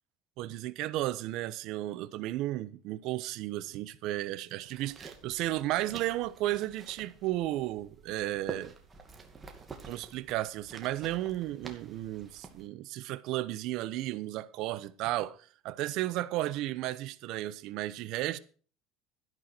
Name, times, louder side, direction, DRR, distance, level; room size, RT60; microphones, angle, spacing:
voice 1, 0.4-8.7 9.8-15.4 15.6-18.4, right 15 dB, 60° right, 1.0 m, -34 dB
sound 1, 4.6-12.7, right 5 dB, 20° right, 2.3 m, -48 dB
12.5 x 11.0 x 4.6 m
cardioid pair, 130°, 0 cm